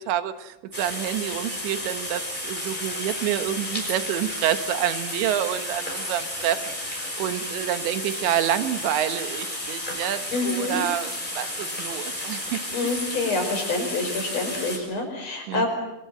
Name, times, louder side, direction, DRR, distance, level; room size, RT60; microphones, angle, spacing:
voice 1, 0.0-13.0 15.5-15.7, right 11 dB, 80° right, 10 dB, 3.5 m, -28 dB
sound 1, 0.7-14.8, left 1 dB, 10° left, 5.5 m, -32 dB
voice 2, 10.3-10.8 12.7-15.7, left 3 dB, 35° left, 4 dB, 6.4 m, -27 dB
27.0 x 24.5 x 7.7 m, 0.91 s
omnidirectional pair, 5.2 m